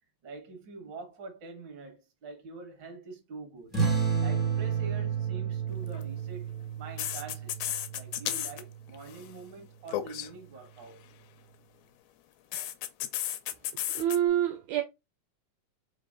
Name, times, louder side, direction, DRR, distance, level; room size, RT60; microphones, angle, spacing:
voice 1, 0.2-3.7 4.2-11.0, right 4 dB, 50° right, 1.6 m, -45 dB
sound 1, 3.7-8.8, right 6 dB, ahead, 0.9 m, -31 dB
sound 2, 5.8-6.0 7.0-8.6 8.9-9.3 9.9-10.3 12.5-14.2, left 12 dB, 80° left, 1.4 m, -33 dB
voice 2, 13.9-14.8, right 11 dB, 80° right, 1.7 m, -26 dB
4.4 x 3.0 x 3.6 m
omnidirectional pair, 3.5 m